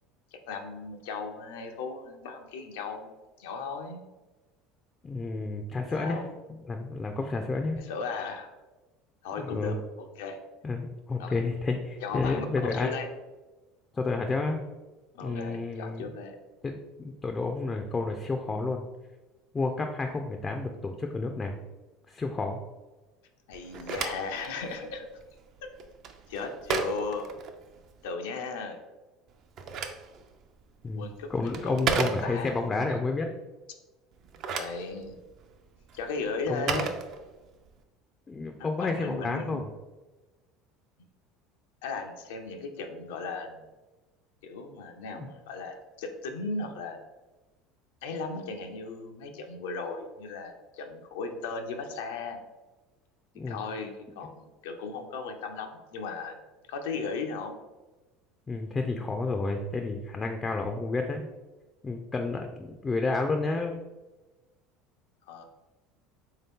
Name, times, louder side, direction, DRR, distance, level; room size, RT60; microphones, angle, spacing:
voice 1, 0.5-3.1 3.4-4.0 5.9-6.3 7.8-8.5 9.2-10.4 11.2-11.4 12.0-13.1 15.1-16.4 23.5-25.1 25.6-25.7 26.3-27.3 28.0-28.8 30.9-33.0 34.5-35.2 35.9-36.9 38.6-39.6 41.8-43.6 44.4-47.0 48.0-52.4 53.5-56.4 56.7-57.5 65.3-65.4, left 4 dB, 90° left, 4 dB, 0.5 m, -36 dB
voice 2, 5.0-6.2 6.5-7.8 9.4-9.8 10.6-12.9 13.9-14.6 15.2-16.0 16.6-18.8 19.5-21.6 22.1-22.6 30.8-33.3 36.5-36.8 38.3-39.7 45.1-45.3 53.4-53.6 58.5-61.3 61.8-63.8, left 3 dB, 20° left, 4 dB, 0.3 m, -30 dB
Telephone, 23.5-28.0 29.3-32.7 34.1-37.7, right 5 dB, 50° right, 0.4 m, -35 dB
3.5 x 2.8 x 3.5 m, 1.1 s
supercardioid pair, 115°, 0 cm